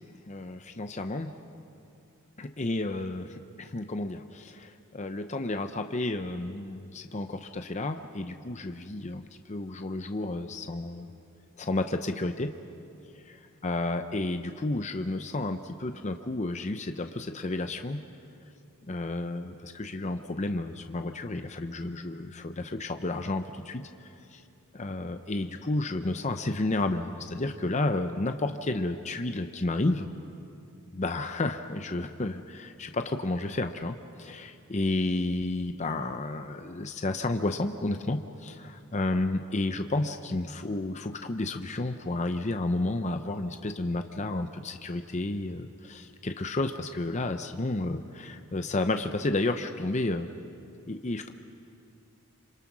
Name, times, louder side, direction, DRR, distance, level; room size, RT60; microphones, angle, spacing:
voice 1, 0.3-1.3 2.4-11.1 11.6-12.5 13.3-18.0 18.9-23.9 24.3-24.4 24.7-30.1 30.9-50.3 50.9-51.3, left 2 dB, 30° left, 7 dB, 0.7 m, -31 dB
26.5 x 26.5 x 6.1 m, 2.6 s
head